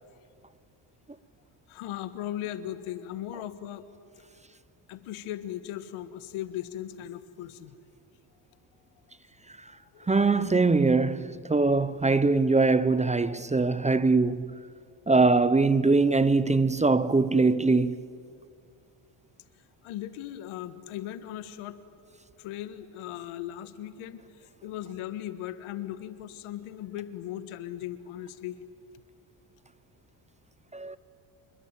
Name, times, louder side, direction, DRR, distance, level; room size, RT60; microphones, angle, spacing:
voice 1, 1.7-3.8 4.9-7.8 9.9-10.1 19.8-21.8 22.4-28.6, left 12 dB, 80° left, 1.7 m, -38 dB
voice 2, 10.1-14.6 15.1-18.0 30.7-31.0, right 3 dB, 15° right, 0.7 m, -22 dB
27.5 x 21.0 x 9.1 m
cardioid pair, 95°, 48 cm